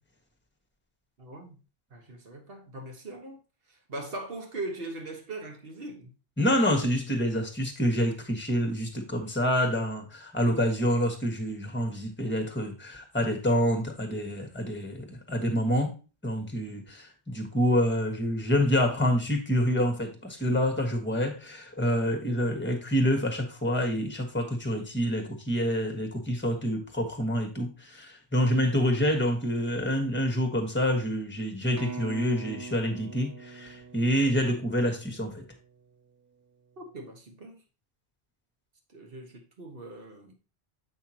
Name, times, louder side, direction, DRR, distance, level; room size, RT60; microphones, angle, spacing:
voice 1, 1.2-1.6 1.9-3.4 3.7-6.1 36.8-37.6 38.9-40.3, right 2 dB, 55° right, 1.5 m, -40 dB
voice 2, 6.4-15.9 16.2-35.4, equal, 10° left, 1.4 m, -27 dB
sound 1, 31.8-35.5, right 4 dB, 30° right, 0.3 m, -42 dB
7.6 x 5.7 x 2.9 m
omnidirectional pair, 1.2 m